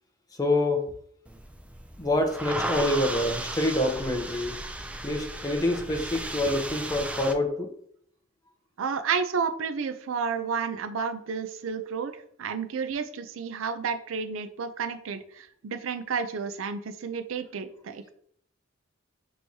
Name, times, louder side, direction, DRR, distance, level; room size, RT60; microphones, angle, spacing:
voice 1, 0.4-0.8 2.0-4.6 5.0-7.7, left 1 dB, 20° left, 4 dB, 0.7 m, -26 dB
sound 1, 1.3-7.3, right 1 dB, 5° right, 0.3 m, -35 dB
voice 2, 8.8-12.1 12.4-18.1, right 6 dB, 85° right, 10 dB, 0.5 m, -31 dB
6.1 x 3.0 x 2.7 m, 0.64 s
head